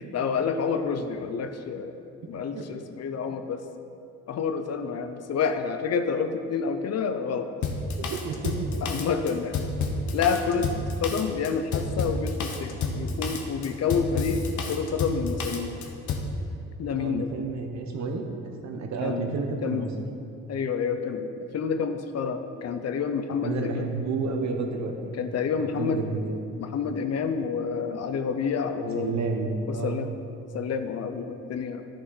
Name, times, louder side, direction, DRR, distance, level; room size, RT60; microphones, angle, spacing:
voice 1, 0.0-2.0 2.3-3.6 4.3-7.5 8.8-9.6 10.1-10.7 11.0-14.4 14.7-15.8 16.8-17.3 19.0-19.3 19.6-19.9 20.5-23.8 25.1-26.0 26.6-29.2 29.7-30.1 30.5-31.9, left 6 dB, 55° left, 8 dB, 0.7 m, -28 dB
Drum kit, 7.6-16.3, left 3 dB, 75° left, 1.0 m, -30 dB
voice 2, 8.0-8.5 10.6-10.7 17.0-19.9 23.4-25.1 25.6-26.4 28.8-30.1, right 4 dB, 65° right, 3 dB, 1.1 m, -31 dB
11.0 x 6.3 x 4.1 m, 2.6 s
cardioid pair, 90°, 30 cm